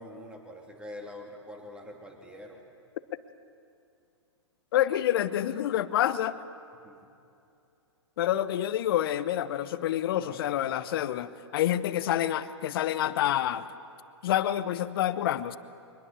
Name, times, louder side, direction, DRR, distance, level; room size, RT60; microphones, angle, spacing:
voice 1, 0.0-2.6 6.8-7.0 10.2-10.8, left 1 dB, 5° right, 1 dB, 2.8 m, -45 dB
voice 2, 4.7-6.4 8.2-13.7 14.2-15.6, left 12 dB, 50° left, 14 dB, 0.9 m, -27 dB
23.5 x 21.0 x 6.7 m, 2.6 s
hypercardioid pair, 120°, 15 cm